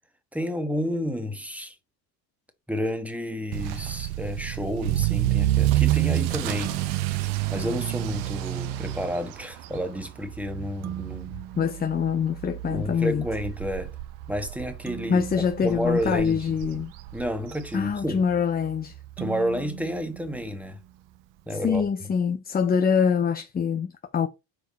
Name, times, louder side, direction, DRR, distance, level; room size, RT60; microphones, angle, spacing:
voice 1, 0.3-1.8 2.7-6.8 7.5-11.5 12.7-14.0 14.3-16.4 17.1-18.2 19.2-20.8 21.4-22.1, equal, 5° right, 1.4 m, -30 dB
Motor vehicle (road) / Accelerating revving vroom, 3.5-18.4 18.7-19.1 19.6-19.7 20.0-20.1 20.3-20.4 21.7-21.8, right 15 dB, 75° right, 1.0 m, -29 dB
sound 1, 6.6-8.3 10.8-12.8 14.9-17.0 19.2-21.2, right 12 dB, 35° right, 0.6 m, -42 dB
voice 2, 11.5-13.3 15.1-16.9 17.7-19.0 21.5-24.3, left 7 dB, 20° left, 0.5 m, -25 dB
4.8 x 4.5 x 5.2 m
supercardioid pair, 95°, 48 cm